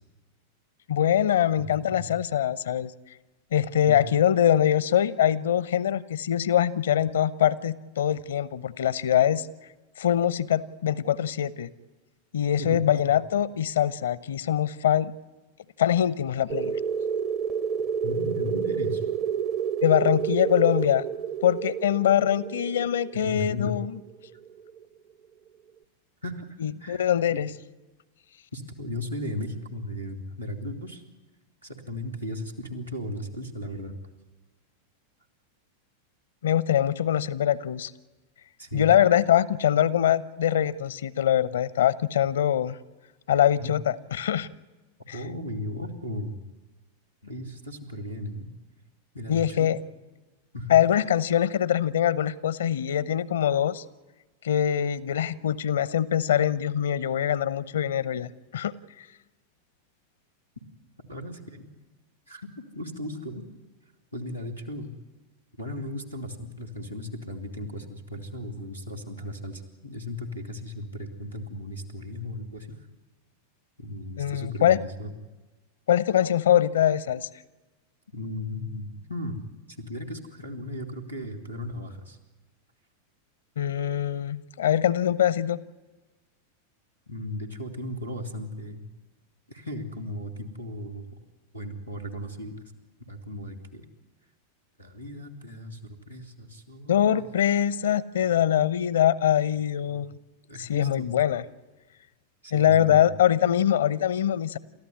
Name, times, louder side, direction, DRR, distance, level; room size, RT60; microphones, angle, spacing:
voice 1, 0.9-2.9 3.5-9.5 10.0-11.7 12.3-15.1 15.8-16.8 19.8-21.0 21.4-24.0 26.6-27.5 36.4-37.9 38.7-42.8 43.3-44.5 45.1-45.2 49.3-49.8 50.7-53.8 54.4-58.7 74.2-74.8 75.9-77.3 83.6-85.6 96.9-100.1 100.6-101.4 102.5-104.6, left 10 dB, 65° left, 19 dB, 0.8 m, -23 dB
voice 2, 1.6-2.1 3.9-4.0 12.6-13.1 18.0-19.0 23.2-23.7 26.2-27.0 27.3-27.4 28.5-31.0 31.6-34.0 38.6-38.9 43.6-43.7 45.1-46.4 47.2-48.5 49.1-49.7 50.5-50.8 61.0-61.7 62.3-63.4 64.1-64.9 65.6-72.8 73.8-75.1 78.1-79.4 79.7-82.2 87.1-88.8 89.5-91.1 91.5-92.6 93.1-93.9 94.8-97.3 98.2-98.3 100.5-101.1 102.4-103.1, left 1 dB, 90° right, -1 dB, 2.8 m, -36 dB
sound 1, 16.5-24.8, right 7 dB, 35° right, 0.8 m, -30 dB
29.5 x 14.0 x 9.7 m, 1.2 s
figure-of-eight pair, 90°, 0 cm